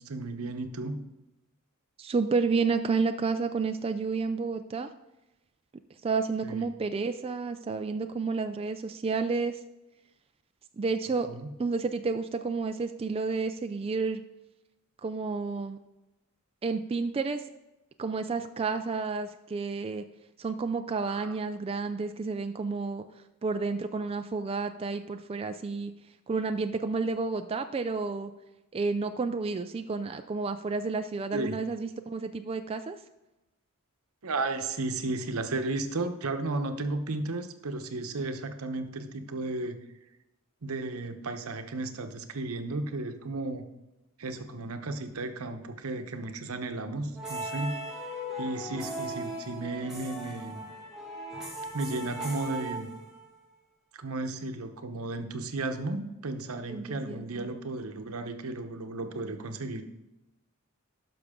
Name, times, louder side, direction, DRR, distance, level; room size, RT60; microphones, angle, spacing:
voice 1, 0.1-1.0 6.4-6.6 11.3-11.5 21.0-21.4 31.3-31.6 34.2-39.8 40.6-43.7 44.2-47.8 48.4-50.7 51.7-52.9 53.9-59.8, right 2 dB, 75° right, 7 dB, 0.9 m, -34 dB
voice 2, 2.0-4.9 6.0-9.6 10.8-11.3 11.6-14.2 15.0-15.8 16.6-17.4 18.0-20.0 20.4-23.1 23.4-25.9 26.3-28.3 28.7-33.0 56.7-57.5, right 4 dB, 25° right, 7 dB, 0.3 m, -30 dB
sound 1, 47.1-53.4, right 1 dB, ahead, 2.0 m, -38 dB
12.0 x 5.9 x 3.7 m, 0.97 s
head